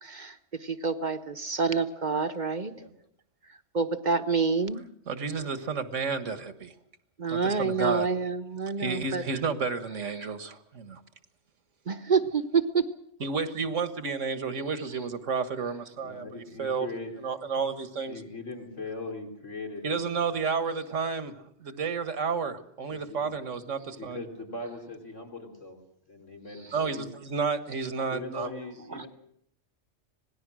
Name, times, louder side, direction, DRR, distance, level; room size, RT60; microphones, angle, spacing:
voice 1, 0.0-2.7 3.7-4.8 7.2-9.2 11.9-12.8 28.9-29.1, right 5 dB, 40° right, 11 dB, 1.0 m, -27 dB
voice 2, 5.1-6.7 7.3-8.1 8.8-11.0 13.2-16.9 17.2-18.2 19.8-24.2 26.7-28.5, right 5 dB, 80° right, 11 dB, 1.8 m, -31 dB
voice 3, 16.0-17.1 18.1-20.1 22.9-23.4 24.0-25.8 26.1-27.1 28.1-29.1, left 3 dB, 80° left, 2 dB, 4.0 m, -40 dB
26.0 x 18.0 x 6.2 m, 0.70 s
omnidirectional pair, 1.3 m